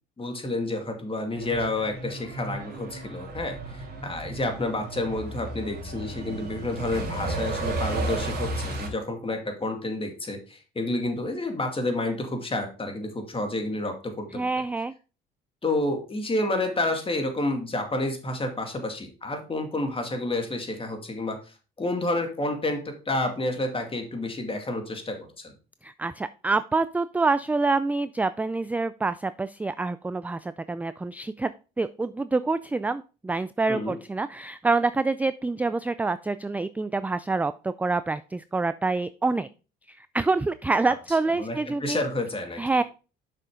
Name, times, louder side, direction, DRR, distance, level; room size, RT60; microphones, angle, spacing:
voice 1, 0.2-14.6 15.6-25.5 33.7-34.0 41.4-42.6, left 2 dB, 25° left, 4 dB, 2.3 m, -30 dB
Truck, 1.3-8.9, right 2 dB, 50° right, 3.1 m, -33 dB
voice 2, 14.3-14.9 25.8-31.5 31.8-39.5 39.9-42.0 42.6-42.8, right 3 dB, 5° right, 14 dB, 0.3 m, -26 dB
6.8 x 6.1 x 3.7 m, 0.34 s
supercardioid pair, 65°, 21 cm